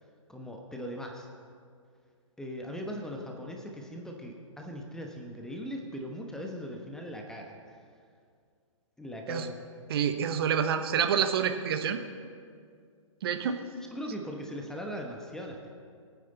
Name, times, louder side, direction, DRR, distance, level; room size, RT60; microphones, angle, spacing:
voice 1, 0.3-1.3 2.4-7.8 9.0-9.6 13.3-13.5 13.9-15.7, equal, 5° left, 1 dB, 1.1 m, -39 dB
voice 2, 9.9-12.0 13.2-13.6, right 8 dB, 45° right, 8 dB, 1.1 m, -27 dB
24.0 x 9.5 x 4.1 m, 2.2 s
figure-of-eight pair, 125°, 17 cm